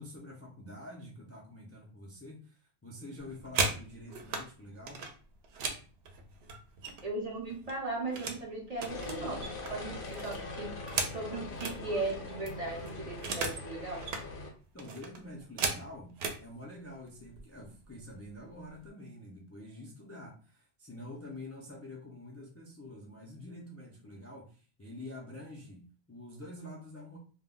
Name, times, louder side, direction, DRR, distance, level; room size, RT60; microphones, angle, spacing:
voice 1, 0.0-5.1 14.7-27.2, left 1 dB, 25° left, -3 dB, 0.3 m, -47 dB
sound 1, 3.2-4.5 4.9-7.2 7.5-8.4 8.8-11.8 12.2-12.3 12.5-13.7 13.9-14.3 14.8-16.4 17.2-17.4 17.8-18.1 18.4-18.9, right 4 dB, 75° right, 0.8 m, -36 dB
voice 2, 7.0-10.8 11.1-14.1, right 2 dB, 50° right, -1 dB, 0.5 m, -37 dB
sound 2, 8.9-14.5, left 2 dB, 60° left, 0.8 m, -42 dB
2.2 x 2.1 x 3.6 m, 0.38 s
omnidirectional pair, 1.1 m